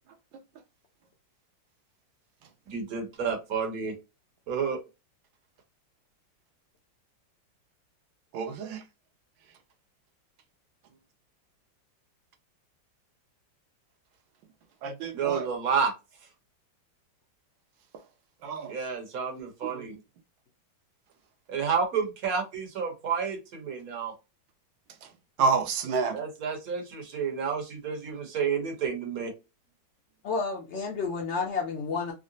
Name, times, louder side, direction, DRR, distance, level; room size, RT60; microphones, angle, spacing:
voice 1, 2.7-3.9 4.5-4.8 15.1-15.9 18.7-19.9 21.5-24.1 26.1-29.3, right 6 dB, 55° right, 1.4 m, -30 dB
voice 2, 8.3-8.8 14.8-15.5 18.4-18.7 19.6-19.9 25.0-25.1 25.4-26.2, right 4 dB, 80° right, 1.4 m, -29 dB
voice 3, 30.2-32.1, left 4 dB, 75° left, 0.6 m, -30 dB
3.7 x 2.0 x 2.5 m
omnidirectional pair, 2.0 m